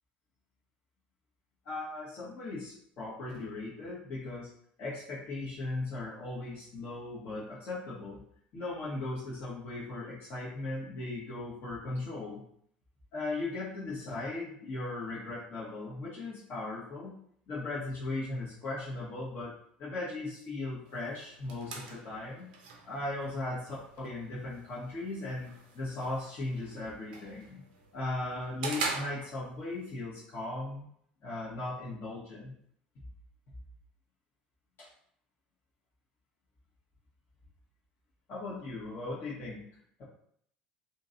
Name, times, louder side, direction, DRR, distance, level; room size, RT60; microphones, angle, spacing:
voice 1, 1.6-4.5 4.8-8.2 8.5-12.4 13.1-17.1 17.5-19.5 19.8-22.5 22.8-27.6 27.9-30.8 31.2-32.5 34.8-34.9 38.3-39.6, left 2 dB, 45° left, -9 dB, 1.1 m, -38 dB
sound 1, 20.8-29.8, right 4 dB, 70° right, 0.6 m, -43 dB
2.9 x 2.8 x 2.6 m, 0.67 s
figure-of-eight pair, 65°, 5 cm